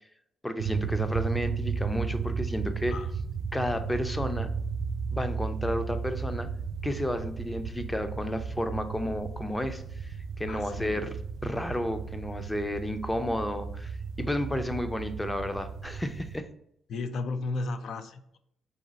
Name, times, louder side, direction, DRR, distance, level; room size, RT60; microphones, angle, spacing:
voice 1, 0.4-3.0 3.5-4.5 5.1-6.5 6.8-11.2 11.4-16.5, left 1 dB, 10° left, 9 dB, 0.5 m, -32 dB
sound 1, 0.6-16.4, right 5 dB, 70° right, 0.3 m, -34 dB
voice 2, 10.5-11.1 16.9-18.4, left 3 dB, 65° left, 10 dB, 0.4 m, -34 dB
4.1 x 3.0 x 3.9 m, 0.73 s
cardioid pair, 90°, 0 cm